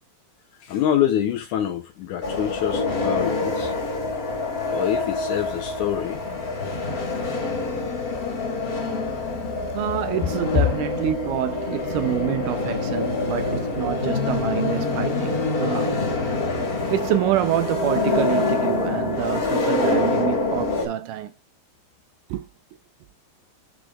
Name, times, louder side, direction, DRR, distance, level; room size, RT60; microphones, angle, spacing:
voice 1, 0.6-3.7 4.7-6.2 10.5-10.6, left 10 dB, 75° left, 1.8 m, -25 dB
sound 1, 2.2-20.9, left 3 dB, 30° left, 1.8 m, -26 dB
voice 2, 9.7-16.0 16.9-21.3 22.3-22.5, right 12 dB, 85° right, 1.8 m, -27 dB
12.0 x 4.8 x 2.3 m
omnidirectional pair, 4.4 m